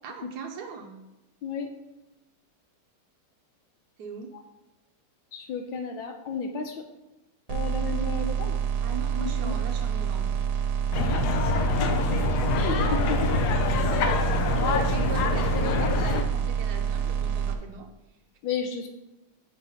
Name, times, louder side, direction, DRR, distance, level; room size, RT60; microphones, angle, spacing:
voice 1, 0.0-1.0 4.0-4.3 8.8-10.4 14.6-17.9, right 5 dB, 65° right, 3 dB, 1.1 m, -40 dB
voice 2, 5.3-6.8 7.5-8.6 9.2-9.6 11.1-11.4 11.9-12.0 12.5-13.4 18.4-18.9, left 5 dB, 75° left, 4 dB, 1.2 m, -33 dB
sound 1, 7.5-17.5, right 8 dB, 80° right, 1.4 m, -27 dB
sound 2, 10.9-16.2, left 5 dB, 90° left, 0.8 m, -26 dB
4.8 x 4.1 x 5.5 m, 0.97 s
omnidirectional pair, 2.4 m